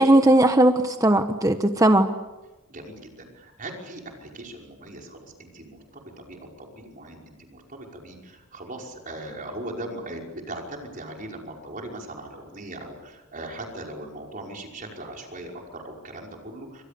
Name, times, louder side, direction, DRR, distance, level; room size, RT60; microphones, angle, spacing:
voice 1, 0.0-2.1, right 1 dB, 15° right, 7 dB, 1.1 m, -18 dB
voice 2, 2.7-16.8, right 1 dB, 40° right, 1 dB, 5.5 m, -39 dB
30.0 x 26.0 x 7.0 m, 1.1 s
head